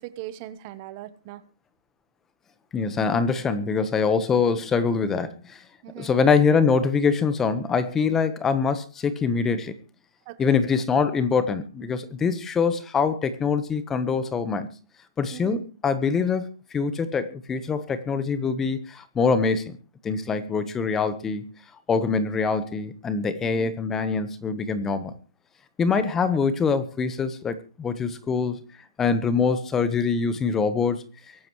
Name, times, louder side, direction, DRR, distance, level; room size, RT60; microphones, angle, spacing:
voice 1, 0.0-1.4 5.8-6.1 10.2-10.6 15.3-15.6 23.4-23.7, right 13 dB, 30° right, 14 dB, 1.1 m, -40 dB
voice 2, 2.7-5.6 6.0-9.7 10.4-14.7 15.2-19.8 20.0-21.5 21.9-25.1 25.8-28.6 29.0-31.0, left 5 dB, 10° left, 13 dB, 1.2 m, -24 dB
23.5 x 12.5 x 3.2 m, 0.34 s
hypercardioid pair, 150°, 3 cm